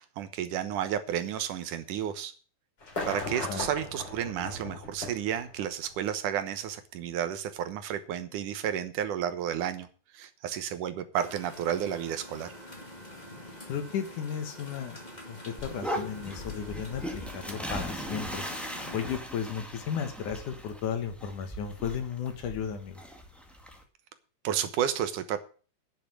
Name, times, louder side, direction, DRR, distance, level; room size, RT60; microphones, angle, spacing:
voice 1, 0.0-2.3 3.1-9.9 10.1-12.5 24.4-25.4, right 10 dB, 75° right, 10 dB, 2.6 m, -32 dB
sound 1, 2.8-5.9 7.0-7.1, left 2 dB, 35° left, 4.5 m, -37 dB
sound 2, 11.1-19.2, left 1 dB, 15° left, 1.6 m, -46 dB
voice 2, 13.7-15.0 15.3-18.5 18.9-23.0, left 7 dB, 70° left, 7 dB, 3.0 m, -34 dB
sound 3, 15.6-23.8, equal, ahead, 1.1 m, -39 dB
10.5 x 6.8 x 8.5 m, 0.39 s
omnidirectional pair, 3.7 m